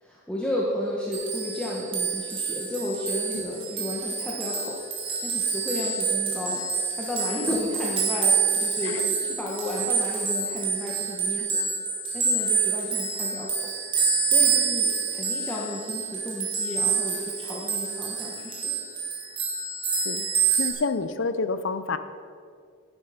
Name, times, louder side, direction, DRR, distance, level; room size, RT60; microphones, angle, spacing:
voice 1, 0.0-6.6 7.0-11.6 12.1-13.7 14.2-18.8, left 1 dB, 5° left, -5 dB, 1.1 m, -32 dB
sound 1, 1.1-20.7, right 5 dB, 25° right, 2.0 m, -27 dB
voice 2, 11.4-11.7 20.0-20.3 20.6-22.0, left 4 dB, 60° left, 11 dB, 0.6 m, -29 dB
11.0 x 10.5 x 5.0 m, 2.2 s
head